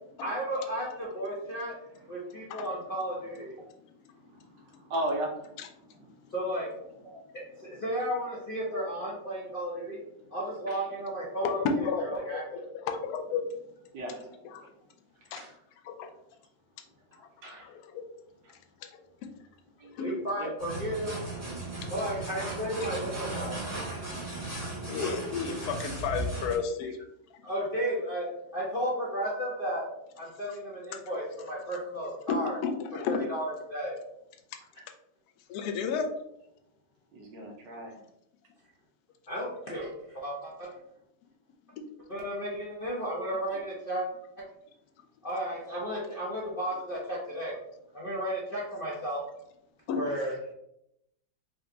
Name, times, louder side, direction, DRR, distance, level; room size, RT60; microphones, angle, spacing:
voice 1, 0.2-1.8 2.1-3.5 6.3-6.7 7.3-10.0 10.3-12.6 20.0-21.2 21.9-23.6 25.5-25.6 27.4-29.9 30.2-32.6 33.1-33.9 39.3-40.7 42.1-44.1 45.2-47.5 47.9-49.2 49.9-50.3, equal, 50° left, -5 dB, 0.6 m, -33 dB
voice 2, 4.3-5.6 7.0-7.2 10.7-10.8 13.9-14.5 15.3-15.6 17.1-17.7 18.4-18.5 19.8-19.9 20.4-20.5 37.1-38.0, right 1 dB, 70° right, 0 dB, 1.4 m, -37 dB
voice 3, 11.4-12.4 12.8-13.4 14.5-14.6 15.3-15.4 15.9-16.1 17.6-18.0 20.0-20.1 24.9-26.9 32.6-33.2 35.5-36.1 49.9-50.0, left 5 dB, 75° left, 4 dB, 0.9 m, -31 dB
sound 1, 20.6-26.6, right 2 dB, 10° right, 1.0 m, -36 dB
4.1 x 2.2 x 3.8 m, 0.79 s
omnidirectional pair, 2.1 m